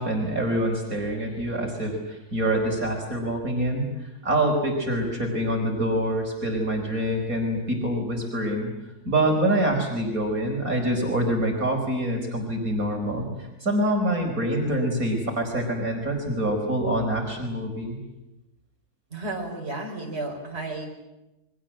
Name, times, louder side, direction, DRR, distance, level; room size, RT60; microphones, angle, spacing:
voice 1, 0.0-18.0, right 1 dB, 60° right, 2 dB, 5.2 m, -26 dB
voice 2, 19.1-20.9, right 2 dB, 40° right, 0 dB, 5.6 m, -32 dB
29.5 x 23.5 x 7.6 m, 1.0 s
omnidirectional pair, 1.6 m